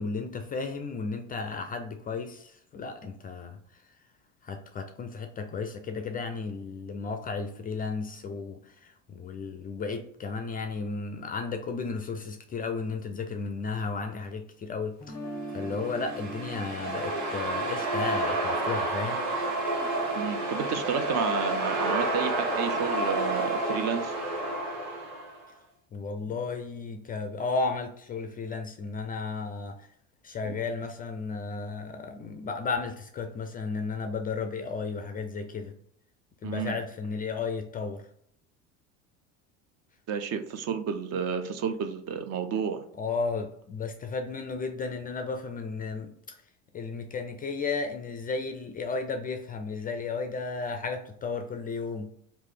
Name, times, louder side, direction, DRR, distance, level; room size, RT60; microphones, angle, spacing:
voice 1, 0.0-3.6 4.4-15.2 15.5-19.2 25.9-29.9 30.2-35.7 36.4-38.0 43.0-46.1 46.7-52.1, left 4 dB, 25° left, 0.3 m, -34 dB
Guitar, 15.0-21.0, right 2 dB, 10° left, 0.7 m, -43 dB
sound 1, 15.6-25.4, right 2 dB, 75° right, 1.3 m, -30 dB
voice 2, 20.2-24.1 26.3-26.4 36.4-36.8 40.1-42.8, right 7 dB, 45° right, 0.5 m, -31 dB
3.1 x 2.5 x 3.7 m
hypercardioid pair, 85°, 38 cm